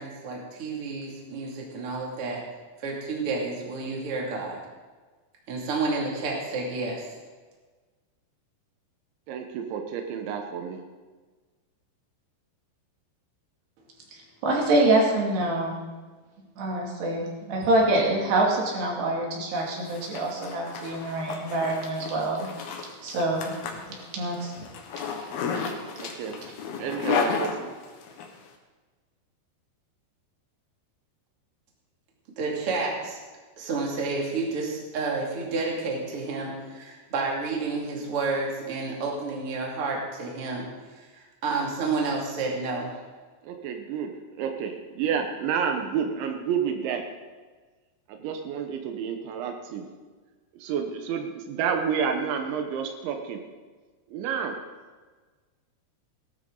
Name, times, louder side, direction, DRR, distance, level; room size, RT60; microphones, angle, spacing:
voice 1, 0.0-2.4 2.8-4.6 5.5-7.1 32.4-33.2 33.6-43.0, right 3 dB, 35° right, -2 dB, 2.8 m, -30 dB
voice 2, 9.3-10.8 25.9-26.4 26.8-27.7 43.4-47.0 48.1-49.9 50.6-53.4 54.1-54.6, right 7 dB, 90° right, 4 dB, 3.5 m, -30 dB
voice 3, 14.1-15.8 16.6-22.7 23.0-23.5 24.1-24.6 25.0-25.3 25.5-25.6, right 2 dB, 70° right, -2 dB, 4.6 m, -26 dB
Zipper (clothing), 19.6-28.3, left 6 dB, 70° left, 3.0 m, -33 dB
18.0 x 12.5 x 3.9 m, 1.4 s
omnidirectional pair, 5.1 m